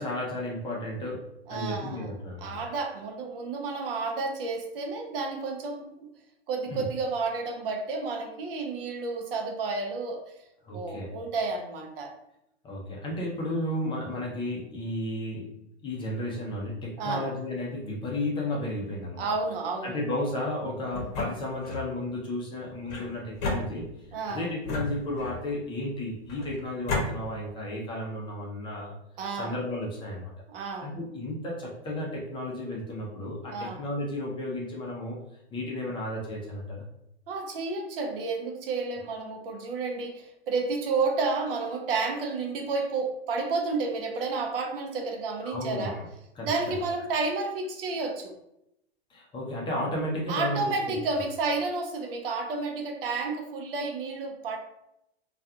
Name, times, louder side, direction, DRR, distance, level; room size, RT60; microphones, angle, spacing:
voice 1, 0.0-2.6 6.7-6.8 10.6-11.1 12.6-15.5 15.8-19.3 19.8-23.9 24.3-28.9 29.4-30.3 30.6-35.2 35.5-36.8 45.4-46.1 46.4-46.7 49.1-50.6, left 1 dB, 15° left, -4 dB, 0.5 m, -33 dB
voice 2, 1.5-2.1 2.4-6.1 6.5-10.2 10.7-12.1 17.0-17.3 19.2-20.0 24.1-24.5 29.2-29.5 30.5-30.9 33.5-33.8 37.3-46.0 46.5-48.3 50.3-54.6, right 3 dB, 60° right, 3 dB, 0.6 m, -31 dB
sound 1, 20.9-21.9 22.9-24.2 24.7-25.5 26.3-27.1, left 2 dB, 40° left, 0.9 m, -33 dB
2.4 x 2.2 x 2.7 m, 0.82 s
hypercardioid pair, 120°, 32 cm